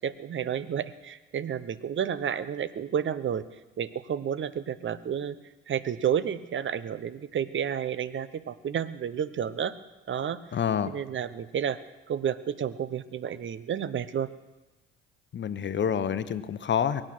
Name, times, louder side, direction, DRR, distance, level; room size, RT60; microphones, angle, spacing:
voice 1, 0.0-3.4 3.8-5.4 5.7-9.7 10.1-10.4 10.9-11.8 12.1-14.3, right 8 dB, 40° right, 15 dB, 1.0 m, -31 dB
voice 2, 10.5-10.9 15.3-17.0, left 8 dB, 35° left, 12 dB, 1.1 m, -27 dB
22.5 x 9.0 x 6.1 m, 1.1 s
hypercardioid pair, 60°, 30 cm